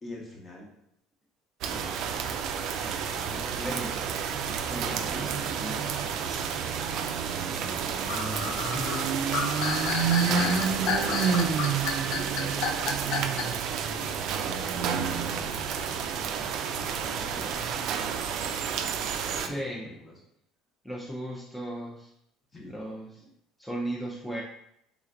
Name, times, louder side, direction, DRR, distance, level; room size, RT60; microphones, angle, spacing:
voice 1, 0.0-0.7 1.7-2.2 2.8-3.5 4.7-5.8 6.1-6.6 8.0-9.0 9.3-11.7 12.1-16.5 16.9-20.1 22.5-22.8, left 1 dB, 30° left, -1 dB, 1.0 m, -45 dB
sound 1, 1.6-19.5, right 7 dB, 65° right, 0.3 m, -29 dB
voice 2, 3.3-4.1 4.4-5.4 8.1-8.8 19.4-20.0 20.8-22.1 22.6-23.3 23.6-24.4, right 1 dB, ahead, -4 dB, 0.5 m, -37 dB
sound 2, 5.9-13.7, left 6 dB, 65° left, 0.4 m, -32 dB
3.5 x 3.1 x 2.4 m, 0.76 s
supercardioid pair, 90°, 0 cm